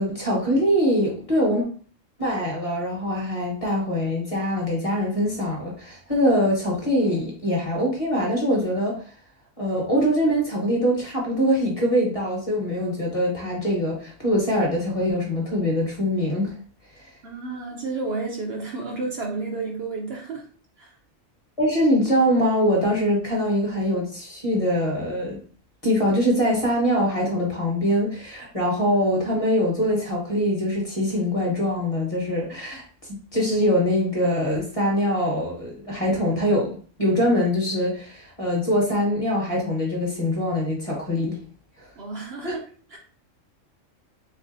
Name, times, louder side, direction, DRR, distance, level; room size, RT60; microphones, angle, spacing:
voice 1, 0.0-1.6 2.2-9.0 9.6-16.5 16.9-17.1 21.6-25.4 25.8-32.8 33.1-36.7 37.0-41.4 41.8-41.9 42.4-42.6, equal, 30° left, -2 dB, 1.1 m, -23 dB
voice 2, 17.2-20.4 20.8-20.9 42.0-42.6 42.9-43.0, right 3 dB, 60° right, 0 dB, 0.8 m, -31 dB
3.6 x 3.3 x 2.6 m, 0.42 s
omnidirectional pair, 1.3 m